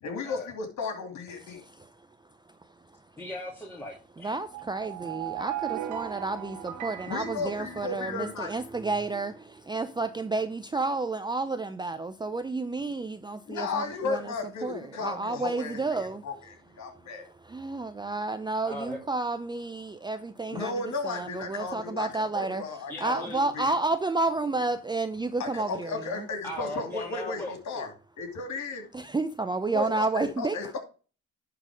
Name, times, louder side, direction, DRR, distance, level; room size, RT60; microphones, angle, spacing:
voice 1, 0.0-1.6 7.1-8.5 13.5-15.8 16.2-17.3 20.5-23.7 25.4-27.9 28.2-28.8 29.7-30.8, left 3 dB, 70° left, 2.9 m, -34 dB
voice 2, 1.5-1.9 4.2-14.3 14.6-16.2 17.2-22.6 23.0-26.3 28.9-30.8, right 3 dB, 15° right, 0.5 m, -31 dB
voice 3, 3.2-4.3 18.7-19.0 22.9-23.5 26.4-27.9, left 1 dB, 10° left, 2.2 m, -38 dB
sound 1, 4.5-8.4, right 12 dB, 80° right, 1.2 m, -38 dB
11.0 x 4.0 x 5.0 m
cardioid pair, 90°, 30 cm